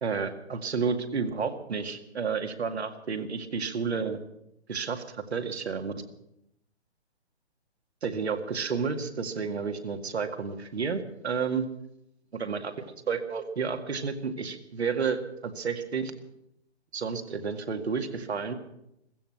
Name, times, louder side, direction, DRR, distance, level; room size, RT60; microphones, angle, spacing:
voice 1, 0.0-4.2 4.7-5.9 8.0-11.7 12.4-16.1 16.9-18.5, right 5 dB, 70° right, 6 dB, 2.1 m, -31 dB
15.5 x 15.0 x 6.0 m, 0.81 s
figure-of-eight pair, 140°, 34 cm